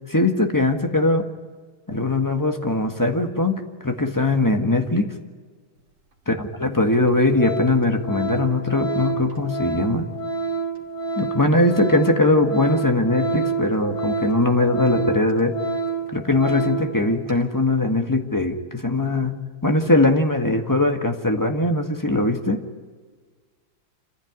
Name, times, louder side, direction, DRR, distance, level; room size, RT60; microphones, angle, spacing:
voice 1, 0.1-1.2 1.9-5.1 6.3-10.1 11.2-15.5 16.1-19.3 19.6-22.6, left 2 dB, 10° left, 5 dB, 1.5 m, -21 dB
Organ, 6.3-6.4 6.9-7.1 7.4-16.9 17.3-17.4, right 4 dB, 65° right, 3.4 m, -28 dB
27.5 x 15.0 x 9.6 m, 1.5 s
omnidirectional pair, 2.2 m